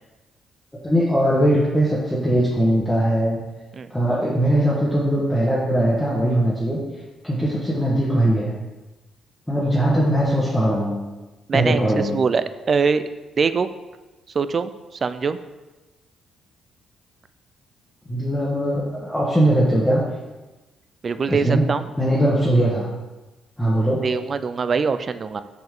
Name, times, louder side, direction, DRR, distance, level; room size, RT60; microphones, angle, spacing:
voice 1, 0.8-3.4 3.9-6.8 7.2-8.5 9.5-11.0 11.5-12.2 18.1-20.0 21.3-21.6 22.0-22.9 23.6-24.0, right 1 dB, 5° left, -6 dB, 1.1 m, -20 dB
voice 2, 11.5-13.0 13.4-13.7 14.3-14.7 15.0-15.4 21.0-21.9 24.0-25.4, right 5 dB, 40° right, 12 dB, 0.3 m, -22 dB
5.7 x 5.3 x 3.7 m, 1.1 s
cardioid pair, 90°, 0 cm